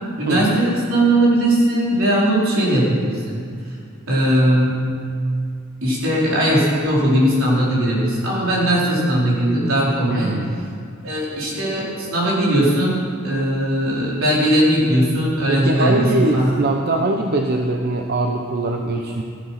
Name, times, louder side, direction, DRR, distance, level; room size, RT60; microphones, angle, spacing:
voice 1, 0.2-3.4 4.1-4.8 5.8-10.4 11.0-16.5, right 1 dB, 75° right, -6 dB, 4.5 m, -19 dB
voice 2, 10.1-10.5 15.5-19.2, right 2 dB, 50° right, 2 dB, 0.8 m, -22 dB
14.5 x 12.0 x 5.9 m, 2.2 s
head